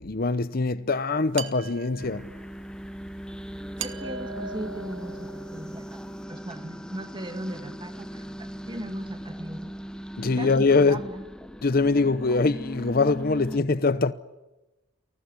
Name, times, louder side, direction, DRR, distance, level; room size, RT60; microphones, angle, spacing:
voice 1, 0.0-2.3 10.2-11.0 11.6-14.1, left 3 dB, 50° left, 0.8 m, -23 dB
sound 1, 1.3-2.4 3.8-5.7, right 5 dB, 90° right, 1.5 m, -39 dB
sound 2, 2.0-13.6, equal, 5° left, 1.1 m, -39 dB
voice 2, 3.8-6.0 6.3-9.7 10.2-11.2, right 1 dB, 25° right, 2.2 m, -38 dB
29.0 x 19.5 x 9.7 m
head